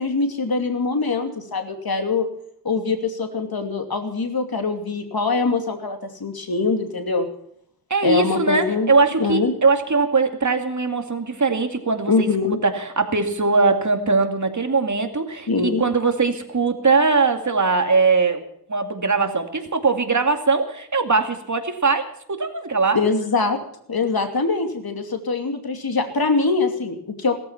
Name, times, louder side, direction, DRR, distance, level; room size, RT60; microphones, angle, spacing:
voice 1, 0.0-2.3 2.6-7.3 8.0-8.9 9.2-9.5 12.1-12.6 15.5-15.8 22.9-23.6 23.9-27.3, left 4 dB, 65° left, 6 dB, 2.8 m, -23 dB
voice 2, 7.9-12.3 12.6-15.5 15.8-23.0, right 4 dB, 50° right, 6 dB, 2.4 m, -21 dB
17.0 x 14.0 x 5.8 m, 0.67 s
wide cardioid pair, 70°, 38 cm